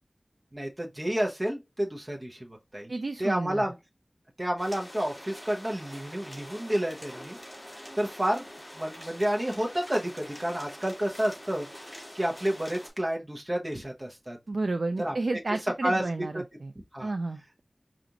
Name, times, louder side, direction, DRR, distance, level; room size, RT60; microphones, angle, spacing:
voice 1, 0.5-2.9 3.2-3.8 4.4-7.4 8.0-8.4 8.7-11.7 12.1-14.4 15.0-15.6 15.8-16.0 16.3-16.4 16.9-17.1, right 1 dB, 30° right, 0.9 m, -30 dB
voice 2, 2.9-3.6 14.5-16.7 17.0-17.6, right 2 dB, 80° right, 0.3 m, -31 dB
sound 1, 4.6-12.9, equal, 5° left, 2.4 m, -45 dB
5.0 x 2.5 x 2.9 m
wide cardioid pair, 55°, 0 cm